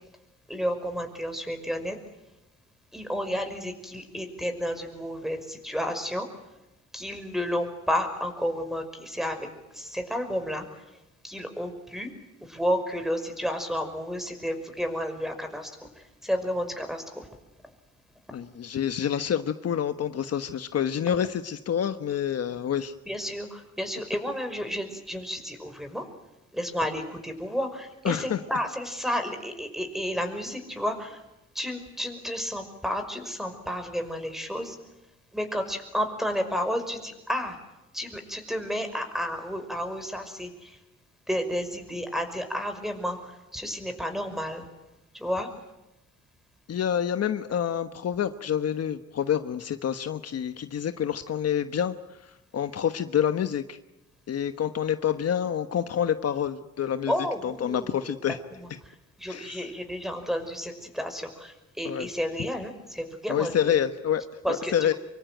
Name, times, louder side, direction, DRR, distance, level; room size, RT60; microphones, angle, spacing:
voice 1, 0.5-2.0 2.9-6.3 6.9-10.8 11.2-12.1 12.4-17.3 23.1-26.0 26.5-31.2 31.5-34.8 35.3-37.6 37.9-40.8 41.3-44.6 45.1-45.5 57.1-57.9 58.6-63.8 64.4-64.9, equal, ahead, 7 dB, 5.6 m, -31 dB
voice 2, 18.3-22.9 28.0-28.4 46.7-52.0 52.2-53.8 54.3-57.1 57.4-58.4 59.3-59.7 61.8-62.1 63.3-64.2 64.5-64.9, left 9 dB, 55° left, 9 dB, 1.2 m, -27 dB
25.5 x 24.0 x 9.2 m, 0.98 s
cardioid pair, 90°, 30 cm